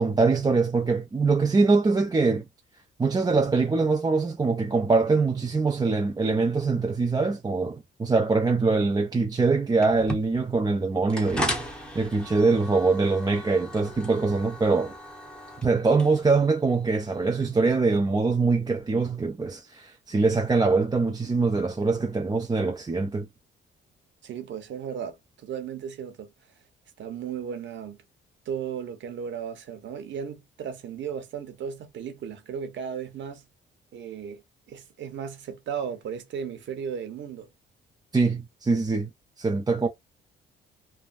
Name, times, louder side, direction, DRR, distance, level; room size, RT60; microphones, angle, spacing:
voice 1, 0.0-2.4 3.0-11.6 11.9-14.9 15.6-23.3 38.1-39.1 39.4-39.9, right 4 dB, 20° right, 0.5 m, -23 dB
sound 1, 9.8-17.7, equal, 5° left, 1.2 m, -37 dB
voice 2, 24.2-26.3 27.0-28.0 28.4-33.4 33.9-34.4 34.7-37.5, right 7 dB, 70° right, 1.1 m, -35 dB
3.3 x 2.2 x 2.5 m
cardioid pair, 90°, 20 cm